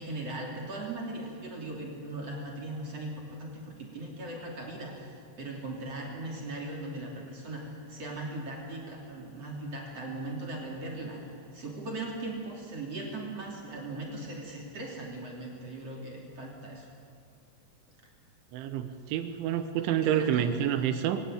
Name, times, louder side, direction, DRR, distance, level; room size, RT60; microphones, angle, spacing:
voice 1, 0.0-16.9 20.0-20.5, right 2 dB, 35° right, -2 dB, 3.4 m, -39 dB
voice 2, 18.5-21.2, right 10 dB, 85° right, 9 dB, 3.4 m, -28 dB
23.5 x 17.0 x 8.9 m, 2.5 s
omnidirectional pair, 5.4 m